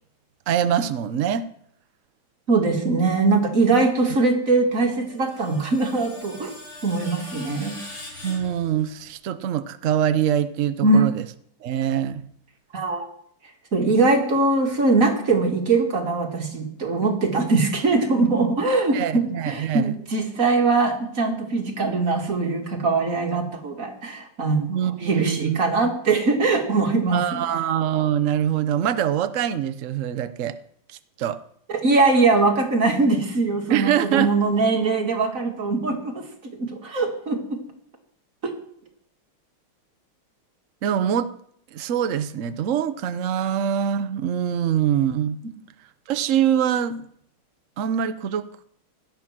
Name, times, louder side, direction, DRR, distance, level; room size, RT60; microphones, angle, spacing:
voice 1, 0.5-1.5 8.2-11.3 11.6-12.2 18.9-20.0 24.7-25.6 27.1-30.6 31.2-31.4 33.7-34.4 40.8-41.3 41.7-45.4 46.1-47.1 47.8-48.6, right 9 dB, 75° right, 12 dB, 0.7 m, -24 dB
voice 2, 2.5-6.5 6.8-7.8 10.8-11.0 12.7-13.1 13.7-27.4 31.8-36.2 36.5-37.6 38.4-38.5, right 3 dB, 40° right, 3 dB, 2.7 m, -21 dB
Screech, 4.8-9.1, left 1 dB, 65° left, 7.2 m, -41 dB
17.5 x 12.0 x 6.0 m, 0.66 s
omnidirectional pair, 2.4 m